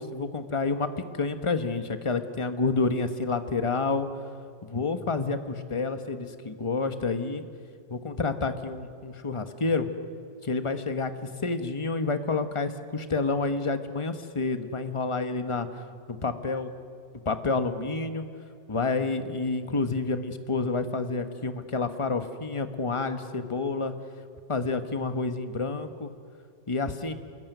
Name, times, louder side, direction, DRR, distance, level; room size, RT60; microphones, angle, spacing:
voice 1, 0.0-4.1 4.6-7.4 7.9-9.9 10.4-16.7 17.2-18.3 18.7-23.9 24.5-26.1 26.7-27.1, left 3 dB, 20° left, 8 dB, 1.1 m, -29 dB
27.5 x 21.5 x 9.5 m, 2.3 s
omnidirectional pair, 2.0 m